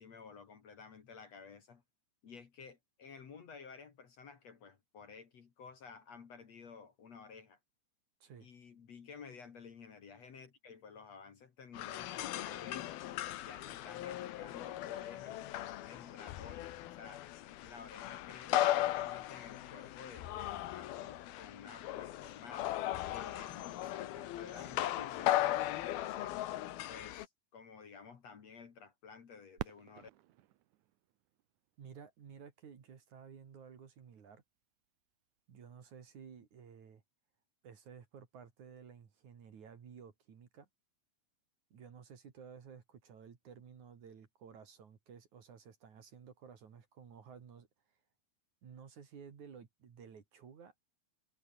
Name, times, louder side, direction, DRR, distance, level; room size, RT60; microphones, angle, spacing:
voice 1, 0.0-1.8 2.2-7.6 8.4-12.9 13.4-15.4 15.8-17.2 17.6-22.7 23.1-26.4 26.9-30.1, left 5 dB, 50° left, 3.0 m, -53 dB
sound 1, 11.7-27.3, left 14 dB, 80° left, 3.1 m, -37 dB
Fireworks, 29.6-32.3 33.0-33.1 33.8-34.2 36.1-36.3, right 14 dB, 70° right, 2.0 m, -48 dB
voice 2, 31.8-34.4 35.5-37.0 37.6-40.7 41.7-47.7 48.6-50.8, right 7 dB, 50° right, 3.8 m, -54 dB
omnidirectional pair, 4.4 m